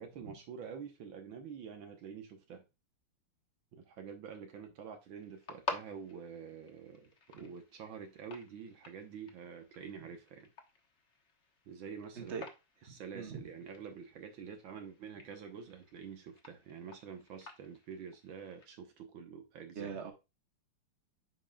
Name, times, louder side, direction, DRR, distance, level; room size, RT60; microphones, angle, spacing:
voice 1, 0.0-2.7 3.7-10.5 11.7-12.4 12.8-19.9, right 6 dB, 70° right, 1.9 m, -47 dB
sound 1, 5.2-18.7, left 3 dB, 40° left, 1.4 m, -50 dB
voice 2, 12.8-13.4 19.7-20.1, right 6 dB, 35° right, 1.7 m, -42 dB
8.7 x 5.4 x 2.3 m
omnidirectional pair, 2.3 m